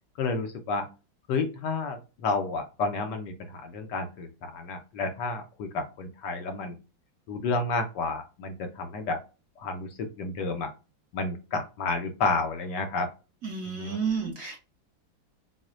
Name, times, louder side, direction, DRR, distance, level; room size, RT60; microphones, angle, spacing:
voice 1, 0.2-0.9 1.3-6.8 7.3-9.2 9.6-10.7 11.1-13.1 13.7-14.0, left 3 dB, 70° left, 5 dB, 1.2 m, -31 dB
voice 2, 13.4-14.6, right 5 dB, 50° right, 0 dB, 1.2 m, -31 dB
6.1 x 2.1 x 2.4 m, 0.31 s
omnidirectional pair, 2.1 m